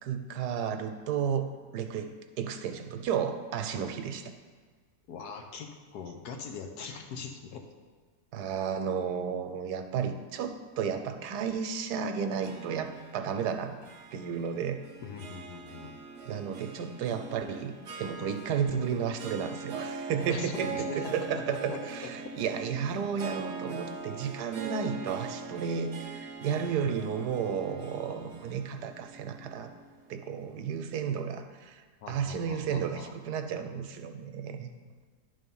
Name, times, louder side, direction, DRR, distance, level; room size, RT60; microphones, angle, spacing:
voice 1, 0.0-2.1 2.4-4.3 8.3-13.7 14.1-14.8 16.2-17.7 18.0-29.7 30.1-31.8 32.1-34.7, right 7 dB, 85° right, 7 dB, 1.2 m, -33 dB
voice 2, 5.1-7.6 15.0-15.9 20.3-21.8 22.2-22.3 27.7-27.8 32.0-33.1, left 6 dB, 75° left, 3 dB, 1.3 m, -41 dB
Harp, 12.4-30.8, right 5 dB, 55° right, 1.0 m, -42 dB
11.0 x 3.8 x 5.4 m, 1.5 s
omnidirectional pair, 1.8 m